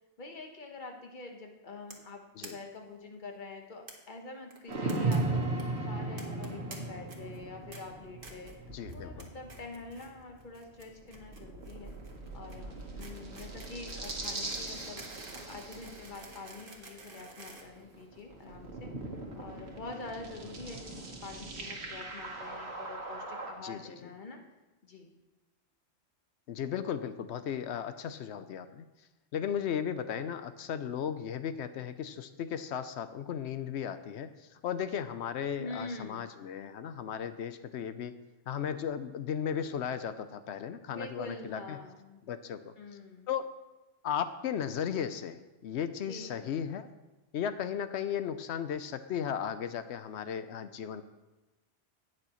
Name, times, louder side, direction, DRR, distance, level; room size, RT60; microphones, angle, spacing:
voice 1, 0.2-8.5 8.9-11.9 12.3-18.9 19.4-24.4 24.8-25.2 35.6-36.3 40.9-42.2 42.8-43.3 46.0-46.4, left 3 dB, 45° left, 3 dB, 1.3 m, -46 dB
sound 1, 1.9-2.1 2.4-2.5 2.8-2.9 3.1-3.2 3.9-4.0 4.5-5.2 5.4-5.6 6.2-6.8 7.1-7.4 7.7-7.8 8.2-8.6 8.9-9.2 9.5-10.1 10.4-18.4, right 3 dB, 50° right, 1.4 m, -50 dB
sound 2, 4.7-16.9 17.6-23.5, right 2 dB, 70° right, 1.5 m, -38 dB
voice 2, 8.7-9.3 23.6-24.1 26.5-28.9 29.3-34.3 34.6-38.2 38.5-41.8 42.3-42.7 43.3-43.5 44.0-46.9 47.3-51.0, left 8 dB, 80° left, 11 dB, 0.9 m, -35 dB
18.0 x 6.2 x 3.0 m, 1.1 s
omnidirectional pair, 1.2 m